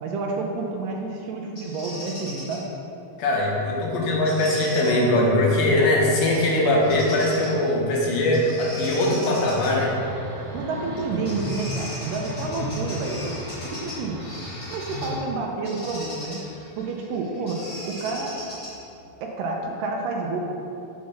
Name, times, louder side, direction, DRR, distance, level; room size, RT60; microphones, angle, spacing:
voice 1, 0.0-2.7 10.5-13.3 13.6-14.2 14.7-16.4 16.8-18.3 19.2-20.4, right 3 dB, 75° right, 1 dB, 2.2 m, -29 dB
Bird vocalization bird call bird song, 1.6-2.6 4.2-4.9 6.2-6.5 6.8-7.6 8.3-9.7 10.9-11.0 11.3-15.2 15.6-18.9, left 1 dB, 35° left, 1.5 m, -38 dB
voice 2, 3.2-9.9, left 1 dB, 80° left, -3 dB, 2.9 m, -21 dB
sound 1, 9.8-15.2, equal, 40° right, 1.0 m, -35 dB
7.2 x 4.5 x 5.7 m, 2.8 s
omnidirectional pair, 4.2 m